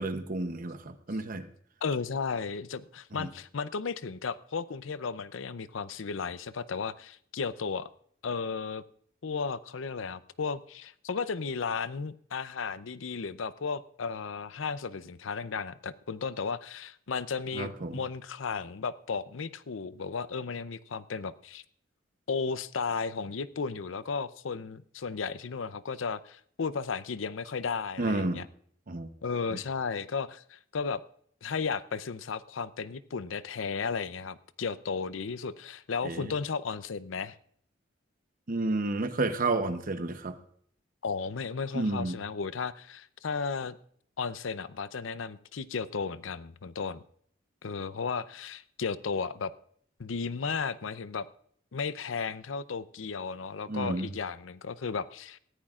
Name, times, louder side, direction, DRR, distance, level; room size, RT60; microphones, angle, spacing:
voice 1, 0.0-1.5 3.1-3.3 17.5-18.0 28.0-28.4 28.9-29.1 29.5-29.6 36.0-36.3 38.5-40.4 41.7-42.2 53.7-54.1, right 2 dB, 45° right, 9 dB, 0.8 m, -31 dB
voice 2, 1.8-7.9 8.2-8.8 9.2-21.6 22.3-28.5 29.2-31.0 31.4-37.4 41.0-43.8 44.2-47.0 47.6-49.5 50.0-51.3 51.7-55.4, left 5 dB, 90° left, 15 dB, 0.6 m, -34 dB
19.0 x 14.5 x 2.4 m, 0.64 s
head